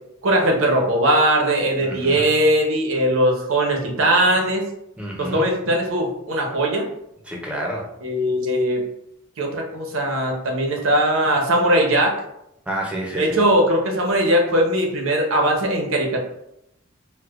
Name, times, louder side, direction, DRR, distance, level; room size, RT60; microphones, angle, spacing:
voice 1, 0.2-4.6 5.2-6.9 8.0-8.8 9.4-12.1 13.2-16.2, right 1 dB, 75° right, 1 dB, 0.8 m, -20 dB
voice 2, 1.8-2.3 5.0-5.5 7.3-7.9 12.7-13.4, right 1 dB, 5° right, -2 dB, 0.6 m, -29 dB
4.6 x 2.1 x 2.4 m, 0.82 s
head